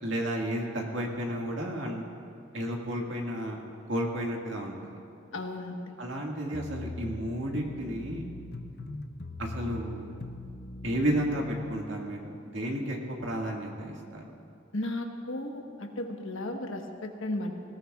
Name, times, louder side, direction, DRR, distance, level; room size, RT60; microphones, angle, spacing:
voice 1, 0.0-2.0 2.5-3.6 3.9-4.8 6.0-8.2 9.4-10.1 10.8-14.2, right 1 dB, 70° right, -1 dB, 1.9 m, -32 dB
voice 2, 5.3-6.0 14.7-17.5, left 1 dB, 90° left, 3 dB, 1.2 m, -35 dB
sound 1, 6.5-11.8, left 2 dB, 55° left, 0.7 m, -41 dB
20.0 x 17.5 x 2.4 m, 2.4 s
head